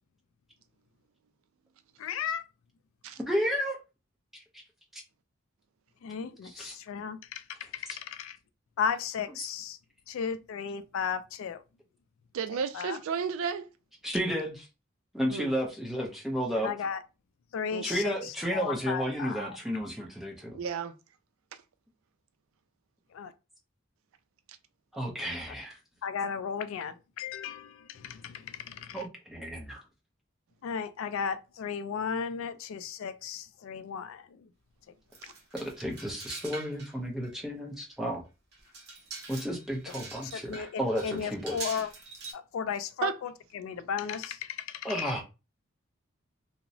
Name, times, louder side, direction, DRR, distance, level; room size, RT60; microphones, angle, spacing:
voice 1, 2.0-2.4 6.0-8.4 8.8-9.8 10.1-11.6 12.7-13.0 16.6-17.0 17.5-19.6 23.1-23.3 26.0-29.1 30.6-34.3 35.2-35.3 40.2-41.9 42.3-45.1, left 7 dB, 80° left, 0.3 m, -35 dB
voice 2, 3.3-3.8 6.4-6.7 7.9-8.0 14.0-14.7 15.2-16.7 17.8-20.6 24.9-25.8 28.9-29.8 35.5-38.2 39.3-41.6 44.8-45.2, equal, ahead, 0.5 m, -32 dB
voice 3, 12.3-13.7 15.3-15.5 17.7-18.0 20.5-20.9 43.0-43.2, right 6 dB, 85° right, 0.4 m, -32 dB
sound 1, 35.1-36.9 37.2-37.3 37.9-38.0 38.5-42.3, right 3 dB, 50° right, 0.9 m, -44 dB
2.8 x 2.0 x 2.6 m
head